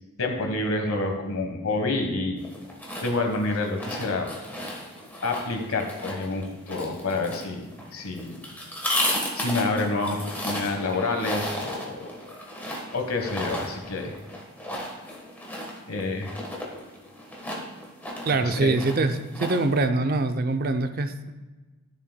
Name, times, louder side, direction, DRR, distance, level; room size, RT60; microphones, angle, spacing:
voice 1, 0.2-2.4 3.0-4.3 5.2-8.5 9.4-12.1 12.9-14.1 15.9-16.3 18.4-18.7, left 2 dB, 75° left, 4 dB, 1.2 m, -28 dB
sound 1, 2.4-19.8, left 1 dB, 10° left, 1.2 m, -34 dB
voice 2, 18.3-21.3, right 3 dB, 40° right, 8 dB, 0.5 m, -24 dB
13.0 x 7.0 x 2.2 m, 1.2 s
head